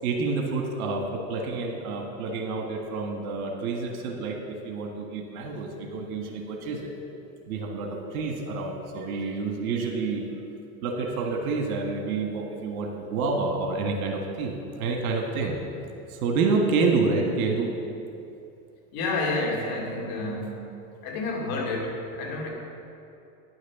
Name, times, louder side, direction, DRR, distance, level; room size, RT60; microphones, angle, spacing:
voice 1, 0.0-6.9 7.5-10.3 10.8-15.5 16.1-17.7, right 4 dB, 75° right, 2 dB, 1.6 m, -28 dB
voice 2, 18.9-20.8 21.0-22.5, left 2 dB, 50° left, -1 dB, 2.5 m, -29 dB
10.5 x 6.5 x 6.9 m, 2.7 s
hypercardioid pair, 110°, 43 cm